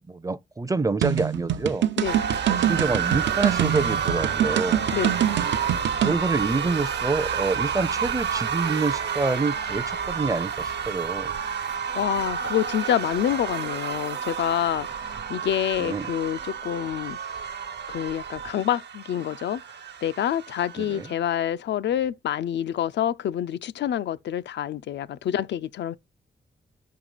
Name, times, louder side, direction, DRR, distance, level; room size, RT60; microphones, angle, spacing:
voice 1, 0.1-1.9 2.5-4.8 5.5-5.7 6.0-11.3 15.8-16.1 20.8-21.1, right 3 dB, 20° right, 0.5 m, -27 dB
sound 1, 1.0-6.2, right 11 dB, 90° right, 0.7 m, -25 dB
sound 2, 2.0-21.1, right 7 dB, 75° right, 1.0 m, -30 dB
voice 2, 11.6-17.4 17.9-19.6 20.0-26.0, left 10 dB, 80° left, 0.4 m, -27 dB
5.8 x 4.6 x 3.9 m
cardioid pair, 85°, 18 cm